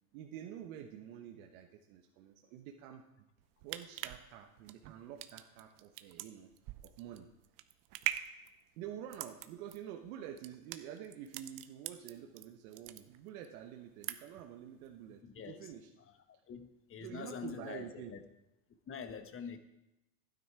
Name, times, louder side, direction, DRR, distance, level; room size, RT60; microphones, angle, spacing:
voice 1, 0.1-3.3 3.6-6.5 6.8-7.3 8.8-15.9 17.0-18.1, right 10 dB, 65° right, 3 dB, 1.2 m, -48 dB
sound 1, 3.4-12.4 12.7-13.5 13.8-14.5 14.8-14.9, right 14 dB, 45° right, 0.8 m, -42 dB
voice 2, 15.2-15.7 16.3-18.2 18.9-19.6, left 6 dB, 30° left, 10 dB, 1.1 m, -45 dB
12.0 x 9.5 x 4.6 m, 0.93 s
hypercardioid pair, 105°, 45 cm